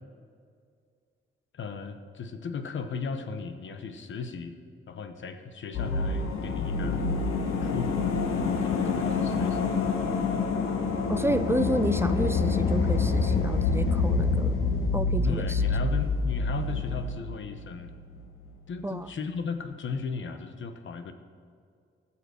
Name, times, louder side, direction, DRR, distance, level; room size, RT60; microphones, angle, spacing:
voice 1, 1.5-4.6 4.9-7.0 7.5-9.7 15.1-18.0 18.7-21.1, left 5 dB, 65° left, 8 dB, 1.0 m, -36 dB
sound 1, 5.7-18.2 18.4-18.5, left 4 dB, 90° left, 1.0 m, -27 dB
voice 2, 11.1-14.6 14.9-15.6 18.8-19.1, right 1 dB, 10° right, 10 dB, 0.4 m, -30 dB
15.0 x 5.7 x 6.5 m, 2.2 s
cardioid pair, 85°, 21 cm